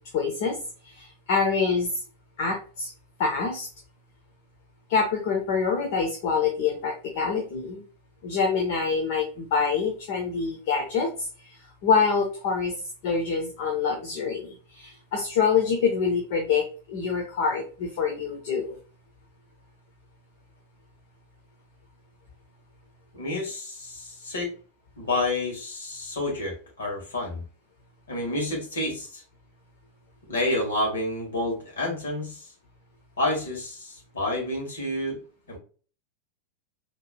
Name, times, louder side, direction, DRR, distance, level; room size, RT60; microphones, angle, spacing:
voice 1, 0.1-0.6 1.0-1.9 2.4-2.9 3.2-3.7 4.9-7.8 8.2-11.3 11.8-12.7 13.0-18.8, left 5 dB, 50° left, 1 dB, 0.8 m, -26 dB
voice 2, 23.1-24.5 25.0-27.4 28.1-29.2 30.3-32.5 33.2-35.2 35.5-35.6, left 1 dB, 65° left, 0 dB, 1.8 m, -29 dB
4.7 x 3.0 x 2.2 m, 0.38 s
figure-of-eight pair, 90°, 0 cm